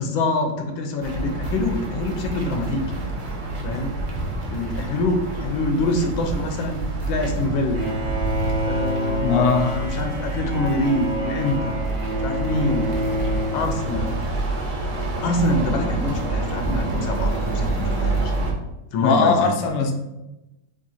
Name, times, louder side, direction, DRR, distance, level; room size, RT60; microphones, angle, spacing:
voice 1, 0.0-2.8 3.6-3.9 4.5-6.8 7.1-7.8 8.6-11.8 12.2-12.9 13.5-14.1 15.2-18.3 18.9-19.5, left 2 dB, 90° left, 5 dB, 1.5 m, -25 dB
sound 1, 1.0-18.5, right 2 dB, 75° right, 0.4 m, -28 dB
Bowed string instrument, 7.7-14.5, equal, 25° right, 0.7 m, -28 dB
voice 2, 9.2-9.7 19.0-19.9, left 4 dB, 75° left, 3 dB, 0.7 m, -19 dB
3.7 x 3.4 x 4.1 m, 0.96 s
omnidirectional pair, 2.1 m